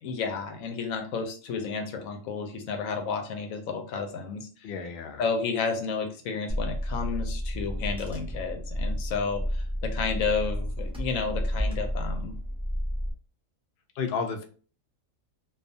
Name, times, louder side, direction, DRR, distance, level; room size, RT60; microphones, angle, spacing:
voice 1, 0.0-4.7 5.2-12.3, left 5 dB, 85° left, 5 dB, 1.0 m, -31 dB
voice 2, 4.6-5.2 14.0-14.4, left 5 dB, 65° left, 4 dB, 0.6 m, -32 dB
Car / Engine, 6.5-13.1, equal, 5° right, 0.6 m, -31 dB
2.4 x 2.3 x 2.6 m, 0.40 s
omnidirectional pair, 1.4 m